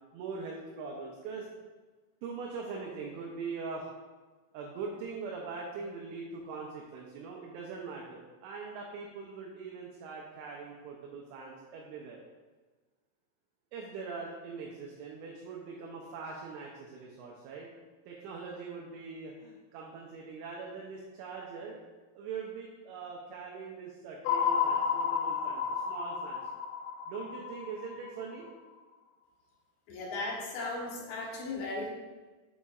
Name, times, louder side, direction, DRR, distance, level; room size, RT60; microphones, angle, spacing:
voice 1, 0.1-1.5 2.2-3.9 4.5-12.2 13.7-17.7 18.1-21.8 22.1-26.4 27.1-28.5, right 4 dB, 80° right, -1 dB, 2.9 m, -42 dB
sound 1, 24.3-28.5, left 6 dB, 90° left, 3.3 m, -31 dB
voice 2, 29.9-31.9, left 2 dB, 70° left, -3 dB, 3.2 m, -36 dB
7.4 x 6.9 x 2.4 m, 1.3 s
omnidirectional pair, 5.9 m